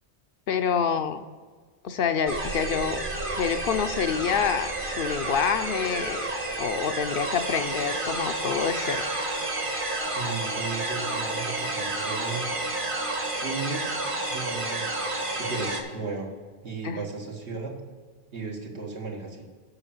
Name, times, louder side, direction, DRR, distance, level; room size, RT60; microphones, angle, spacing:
voice 1, 0.5-1.2 1.8-3.0 3.4-6.3 6.6-9.0 16.8-17.0, left 7 dB, 65° left, 9 dB, 0.7 m, -27 dB
sound 1, 2.3-15.8, right 2 dB, 50° right, 1.4 m, -30 dB
sound 2, 4.6-6.1 8.7-9.9, right 3 dB, 30° right, 0.3 m, -42 dB
voice 2, 10.1-12.5 13.4-13.9 14.3-15.0 15.3-16.3 16.6-17.7 18.3-19.5, right 4 dB, 80° right, 0 dB, 1.8 m, -35 dB
8.0 x 5.9 x 7.0 m, 1.5 s
omnidirectional pair, 1.1 m